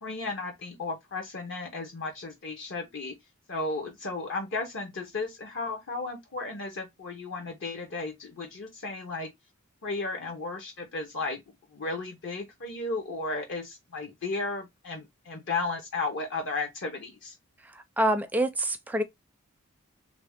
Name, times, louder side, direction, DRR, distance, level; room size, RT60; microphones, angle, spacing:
voice 1, 0.0-3.2 3.5-9.3 9.8-11.4 11.7-17.3, left 3 dB, 60° left, 0.8 m, -34 dB
voice 2, 17.6-19.0, right 1 dB, 10° right, 0.4 m, -27 dB
3.1 x 2.6 x 3.4 m
head